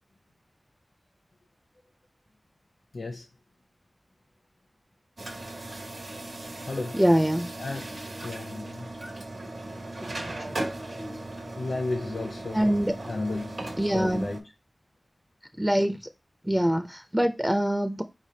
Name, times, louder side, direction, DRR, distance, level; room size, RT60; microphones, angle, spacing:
voice 1, 2.9-3.3 6.7-7.0 7.6-8.0 8.2-8.9 11.0-11.2 11.5-12.8 13.1-14.4, left 2 dB, 65° left, 0.6 m, -33 dB
sound 1, 5.2-14.4, right 1 dB, 75° right, 1.2 m, -37 dB
voice 2, 6.9-7.5 10.2-10.6 12.5-12.9 13.8-14.3 15.6-16.1 16.4-18.0, equal, 10° right, 0.4 m, -24 dB
4.8 x 3.3 x 2.7 m
wide cardioid pair, 65°, 0 cm